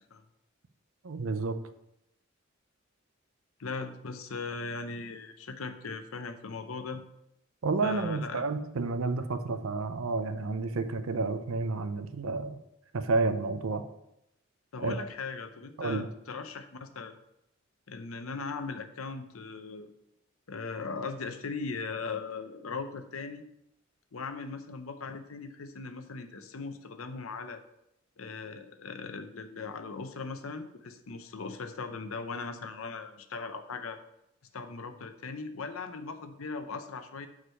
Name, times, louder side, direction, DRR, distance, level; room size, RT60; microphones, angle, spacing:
voice 1, 1.0-1.6 7.6-12.6 12.9-13.8 14.8-15.0 15.8-16.1, right 3 dB, 80° right, 10 dB, 0.6 m, -30 dB
voice 2, 3.6-7.0 7.8-8.5 14.7-17.2 17.9-19.9 20.5-23.5 24.1-27.6 28.2-34.0 34.5-37.3, left 4 dB, 90° left, 8 dB, 0.7 m, -39 dB
6.4 x 4.8 x 5.4 m, 0.82 s
head